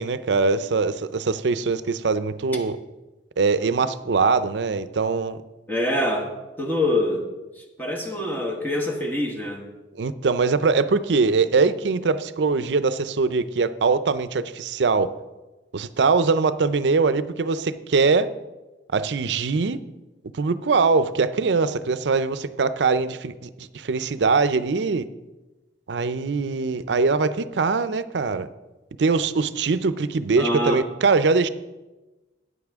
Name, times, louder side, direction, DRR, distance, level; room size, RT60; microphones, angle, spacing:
voice 1, 0.0-2.8 3.4-5.4 10.0-15.1 15.7-18.3 18.9-19.8 20.3-25.1 25.9-28.5 29.0-31.5, right 4 dB, 75° right, 0.5 m, -22 dB
voice 2, 5.7-7.3 7.6-9.6 30.4-30.8, left 1 dB, 10° left, 1.2 m, -25 dB
13.0 x 9.5 x 3.5 m
head